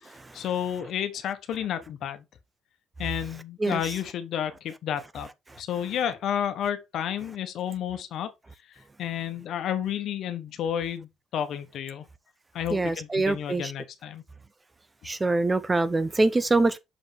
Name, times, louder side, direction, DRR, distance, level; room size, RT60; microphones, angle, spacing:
voice 1, 0.0-2.2 3.0-5.3 5.6-8.3 9.0-12.1 12.5-14.2, left 9 dB, 70° left, 1.2 m, -31 dB
voice 2, 12.7-13.7 15.0-16.8, right 2 dB, 20° right, 0.6 m, -24 dB
6.5 x 5.2 x 3.5 m
cardioid pair, 115°, 0 cm